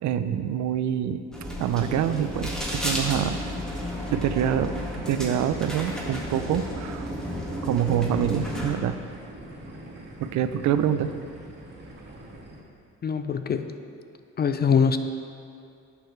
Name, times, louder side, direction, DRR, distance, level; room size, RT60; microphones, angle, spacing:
voice 1, 0.0-1.2 1.6-3.4 4.1-7.1 7.6-9.0 10.2-11.1, right 9 dB, 70° right, 11 dB, 0.5 m, -26 dB
sound 1, 1.3-8.7, equal, ahead, 1.9 m, -32 dB
sound 2, 2.8-12.6, right 1 dB, 35° right, 1.9 m, -43 dB
voice 2, 13.0-13.7 14.4-15.0, left 6 dB, 35° left, 9 dB, 0.4 m, -23 dB
11.0 x 6.9 x 3.3 m, 2.5 s
cardioid pair, 90°, 30 cm